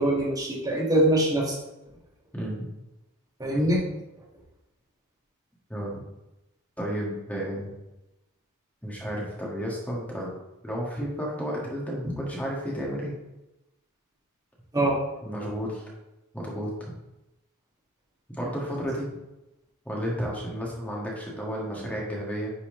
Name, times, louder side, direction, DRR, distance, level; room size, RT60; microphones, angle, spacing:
voice 1, 0.0-1.6 3.4-3.8 14.7-15.0, right 1 dB, 15° right, -4 dB, 1.9 m, -23 dB
voice 2, 2.3-2.6 5.7-6.0 6.8-7.7 8.8-10.3 10.6-13.1 15.2-15.9 16.3-16.7 18.3-19.1 19.8-22.5, equal, 5° left, -4 dB, 1.7 m, -32 dB
10.0 x 4.3 x 3.8 m, 0.95 s
head